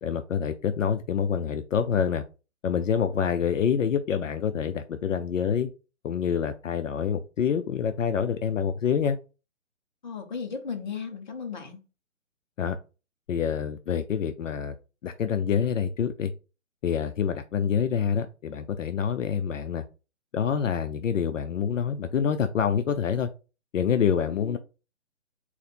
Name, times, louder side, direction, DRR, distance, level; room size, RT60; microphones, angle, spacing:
voice 1, 0.0-2.2 2.6-5.7 6.0-9.2 12.6-12.8 13.3-14.7 15.0-16.3 16.8-19.8 20.3-23.3 23.7-24.6, left 7 dB, 70° left, 9 dB, 0.5 m, -26 dB
voice 2, 10.0-11.8 24.2-24.6, left 5 dB, 35° left, 3 dB, 0.9 m, -36 dB
4.1 x 2.6 x 4.1 m, 0.31 s
hypercardioid pair, 165°, 39 cm